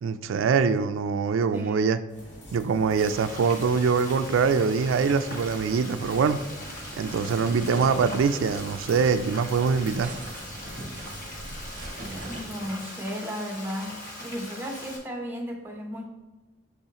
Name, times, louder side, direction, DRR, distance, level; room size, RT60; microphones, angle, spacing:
voice 1, 0.0-2.0 2.5-6.4 7.0-10.1, right 5 dB, 85° right, 11 dB, 0.3 m, -24 dB
voice 2, 1.5-1.9 12.3-13.9 14.2-16.1, equal, 10° right, 1 dB, 0.8 m, -34 dB
sound 1, 2.1-12.7, right 1 dB, 65° left, 2.0 m, -45 dB
Frying (food), 3.0-15.0, left 1 dB, 45° left, 1.2 m, -41 dB
sound 2, 5.9-12.4, right 2 dB, 45° right, 0.7 m, -43 dB
6.1 x 5.5 x 2.9 m, 1.2 s
head